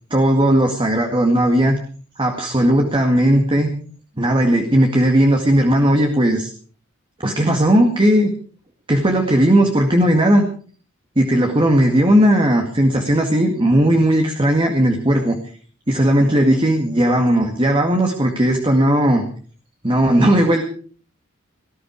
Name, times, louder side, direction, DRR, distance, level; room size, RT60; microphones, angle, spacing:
voice 1, 0.1-1.8 2.2-3.7 4.2-6.5 7.2-8.3 8.9-10.4 11.2-15.4 15.9-19.2 19.8-20.6, right 1 dB, 25° right, 3 dB, 2.1 m, -16 dB
19.5 x 14.0 x 4.7 m, 0.43 s
head